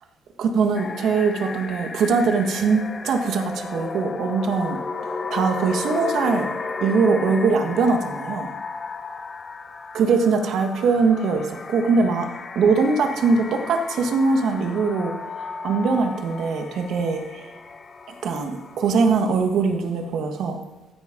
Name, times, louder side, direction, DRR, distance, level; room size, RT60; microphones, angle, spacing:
voice 1, 0.4-4.8 5.3-6.5 6.8-8.5 9.9-12.3 12.5-15.1 15.6-17.5 18.2-20.6, right 4 dB, 65° right, 6 dB, 1.5 m, -21 dB
sound 1, 0.7-19.6, left 4 dB, 30° left, 1.0 m, -34 dB
15.0 x 9.7 x 5.2 m, 1.1 s
cardioid pair, 110°, 0 cm